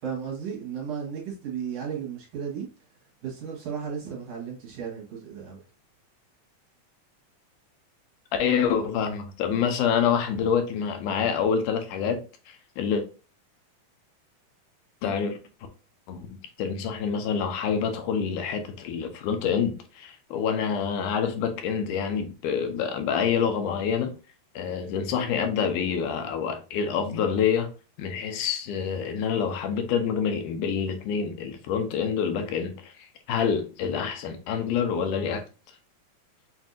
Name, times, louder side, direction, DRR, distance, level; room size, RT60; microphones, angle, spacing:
voice 1, 0.0-2.7 3.2-5.6, right 7 dB, 60° right, 1.9 m, -34 dB
voice 2, 8.4-13.0 15.0-15.4 16.1-24.1 24.6-27.7 28.0-35.4, left 7 dB, 85° left, 2.2 m, -27 dB
5.7 x 2.6 x 2.5 m
omnidirectional pair, 3.6 m